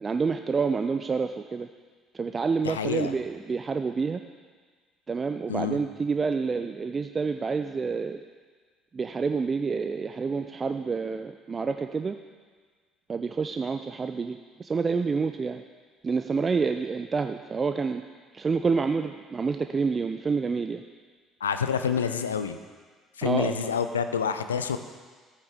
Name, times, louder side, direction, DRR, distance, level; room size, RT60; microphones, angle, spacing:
voice 1, 0.0-1.7 2.1-4.2 5.1-8.2 8.9-12.2 13.1-15.6 16.0-18.0 18.3-20.8 23.2-23.8, right 5 dB, 30° right, 7 dB, 0.5 m, -28 dB
voice 2, 2.6-3.1 5.5-5.8 21.4-22.6 23.2-24.8, left 7 dB, 85° left, 10 dB, 0.5 m, -27 dB
14.0 x 9.4 x 3.5 m, 1.5 s
figure-of-eight pair, 55°, 0 cm